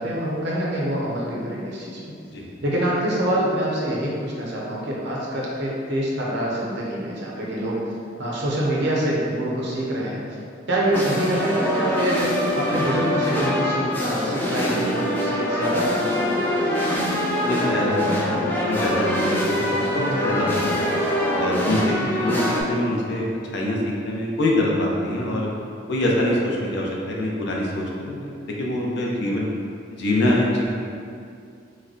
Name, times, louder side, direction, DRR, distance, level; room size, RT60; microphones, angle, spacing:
voice 1, 0.0-2.0 2.6-7.9 8.2-10.2 10.7-17.0 21.8-22.1, right 1 dB, 65° right, -5 dB, 0.7 m, -25 dB
sound 1, 10.9-22.6, left 1 dB, 10° left, 0.3 m, -24 dB
voice 2, 17.4-20.8 21.3-23.2 23.5-25.5 25.9-28.3 28.6-29.5 29.9-30.6, left 1 dB, 65° left, -3 dB, 0.5 m, -24 dB
3.1 x 2.1 x 3.8 m, 2.4 s
head